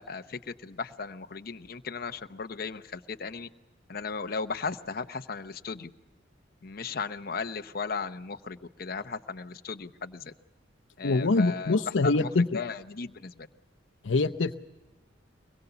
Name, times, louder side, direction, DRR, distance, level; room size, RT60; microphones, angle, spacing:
voice 1, 0.0-3.5 3.9-5.9 6.6-10.3 11.0-11.8 12.0-13.5, left 5 dB, 55° left, 8 dB, 0.8 m, -36 dB
voice 2, 11.0-12.6 14.0-14.5, left 3 dB, 90° left, 7 dB, 0.7 m, -24 dB
24.0 x 21.5 x 6.9 m, 1.1 s
head